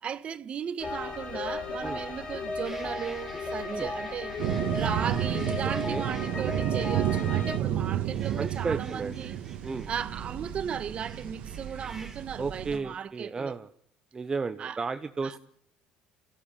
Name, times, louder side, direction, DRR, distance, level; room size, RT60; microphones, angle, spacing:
voice 1, 0.0-4.4 4.7-9.4 9.9-13.6 14.6-14.8 15.2-15.4, right 8 dB, 45° right, 1.5 m, -36 dB
sound 1, 0.8-7.6, left 3 dB, 40° left, 5.2 m, -35 dB
sound 2, 2.6-12.2, right 2 dB, 10° right, 4.0 m, -51 dB
sound 3, 4.4-12.8, right 11 dB, 75° right, 1.7 m, -31 dB
voice 2, 8.4-9.2 9.6-9.9 12.4-13.7 14.1-15.4, right 4 dB, 25° right, 1.0 m, -33 dB
29.0 x 15.5 x 8.5 m
cardioid pair, 95°, 3 cm